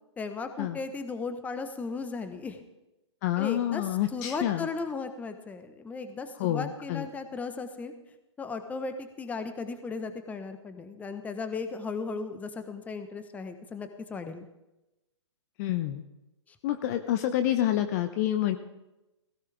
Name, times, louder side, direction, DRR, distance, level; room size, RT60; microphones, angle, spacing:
voice 1, 0.2-2.6 3.4-7.9 8.4-14.5, left 4 dB, 10° left, 8 dB, 1.1 m, -36 dB
voice 2, 3.2-4.7 6.4-7.1 15.6-16.0 16.6-18.6, left 12 dB, 35° left, 8 dB, 0.8 m, -28 dB
17.5 x 16.0 x 3.5 m, 0.96 s
figure-of-eight pair, 120°, 15 cm